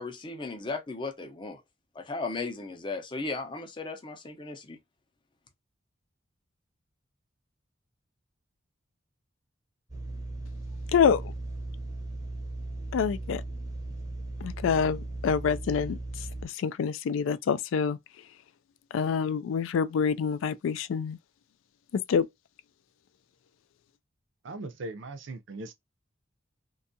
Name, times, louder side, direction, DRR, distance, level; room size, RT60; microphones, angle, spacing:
voice 1, 0.0-1.6 1.9-4.8, left 3 dB, 25° left, 0.5 m, -36 dB
sound 1, 9.9-16.4, right 2 dB, 20° right, 0.6 m, -37 dB
voice 2, 10.9-11.3 12.9-13.4 14.4-18.0 18.9-21.2 21.9-22.3, left 6 dB, 75° left, 0.3 m, -27 dB
voice 3, 24.4-25.7, right 2 dB, 65° right, 0.5 m, -39 dB
2.6 x 2.3 x 2.6 m
head